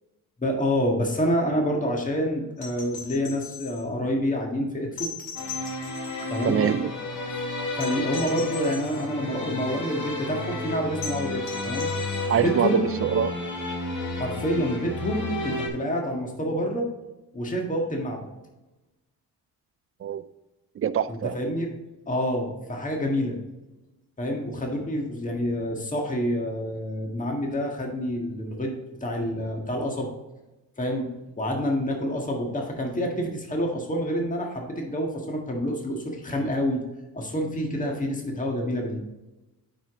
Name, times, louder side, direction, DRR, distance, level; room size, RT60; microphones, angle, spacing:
voice 1, 0.4-5.1 6.3-6.6 7.8-11.9 12.3-12.9 14.2-16.9 17.3-18.3 21.1-21.7 22.1-23.4 24.2-28.7 29.0-30.1 30.8-31.1 31.4-36.8 37.1-39.0, equal, 20° left, 0 dB, 1.7 m, -27 dB
sound 1, 2.6-3.9 5.0-6.5 7.8-9.1 11.0-12.5 14.3-14.4, left 5 dB, 80° left, 2.4 m, -39 dB
sound 2, 5.4-15.7, left 2 dB, 55° left, 2.0 m, -32 dB
voice 2, 6.4-6.9 12.3-13.4 20.0-20.2 20.8-21.4, right 8 dB, 40° right, 16 dB, 0.4 m, -24 dB
8.7 x 5.1 x 3.7 m, 1.0 s
cardioid pair, 85°, 37 cm